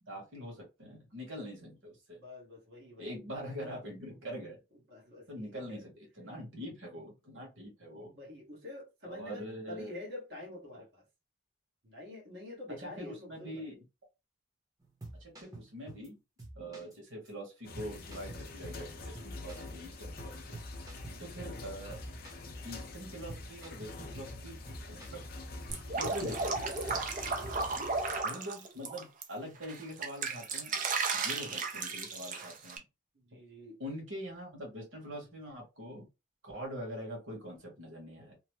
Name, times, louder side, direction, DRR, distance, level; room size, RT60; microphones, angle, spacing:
voice 1, 0.0-2.2 3.0-4.6 5.3-8.1 9.0-9.9 12.8-13.8 15.2-16.2 16.5-20.6 21.2-22.0 22.6-24.6 24.9-25.3 26.0-26.7 28.2-30.8 31.1-32.8 33.3-33.4 33.8-36.1 36.4-38.4, equal, 85° right, 1.4 m, -44 dB
voice 2, 2.1-3.2 4.9-5.8 8.1-11.0 11.8-13.6 19.5-19.8 21.0-21.4 27.2-27.9 33.1-33.8, left 2 dB, 60° right, 1.3 m, -47 dB
sound 1, 14.8-16.1 16.4-17.0 17.2-17.3 17.8-18.9 19.1-21.6 21.9-22.5 22.8-23.0 23.3-24.4 24.7-25.2 25.5-27.1 27.4-27.7, right 2 dB, 20° right, 0.9 m, -49 dB
sound 2, 17.6-28.2, left 2 dB, 50° left, 0.5 m, -45 dB
Drip, 25.7-29.2 29.6-32.8, right 4 dB, 40° right, 0.5 m, -34 dB
2.9 x 2.1 x 3.1 m
head